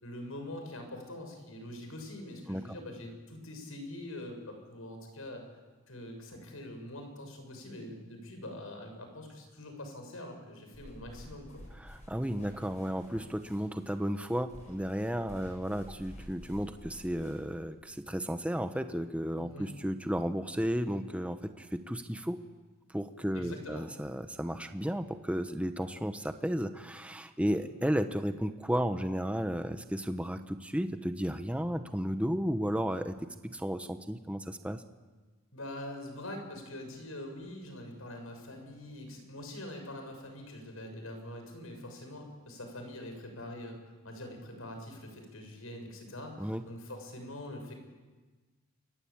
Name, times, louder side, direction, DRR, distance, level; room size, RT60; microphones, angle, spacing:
voice 1, 0.0-5.4 5.9-11.6 19.4-19.7 23.3-23.9 27.4-27.6 35.5-43.8 44.0-47.7, left 1 dB, 75° left, 4 dB, 6.8 m, -44 dB
sound 1, 10.7-17.6, equal, 35° left, 6.9 m, -51 dB
voice 2, 11.8-22.4 22.9-34.8 46.4-46.6, equal, 5° right, 8 dB, 1.0 m, -33 dB
29.0 x 22.5 x 8.6 m, 1.3 s
head